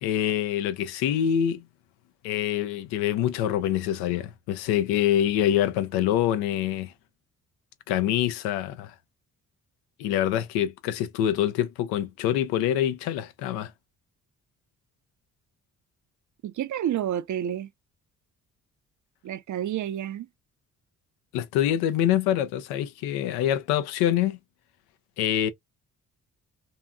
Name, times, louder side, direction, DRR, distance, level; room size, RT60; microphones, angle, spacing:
voice 1, 0.0-1.6 2.2-6.9 7.9-8.9 10.0-13.7 21.3-24.4 25.2-25.5, left 11 dB, 85° left, 0.6 m, -25 dB
voice 2, 16.4-17.7 19.2-20.3, right 10 dB, 50° right, 0.6 m, -29 dB
2.8 x 2.4 x 2.2 m
hypercardioid pair, 50°, 38 cm